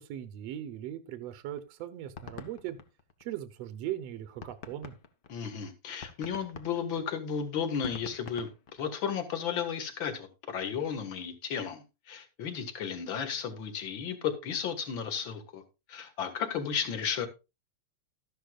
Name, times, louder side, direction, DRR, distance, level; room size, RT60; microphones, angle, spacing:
voice 1, 0.0-2.8 3.2-4.9, right 12 dB, 70° right, 10 dB, 1.8 m, -39 dB
sound 1, 1.6-3.6 4.0-4.1 4.4-9.3, left 6 dB, 70° left, 1.0 m, -47 dB
voice 2, 5.3-15.6 15.9-17.3, left 7 dB, 45° left, 8 dB, 2.1 m, -34 dB
13.5 x 11.5 x 2.4 m, 0.27 s
omnidirectional pair, 3.5 m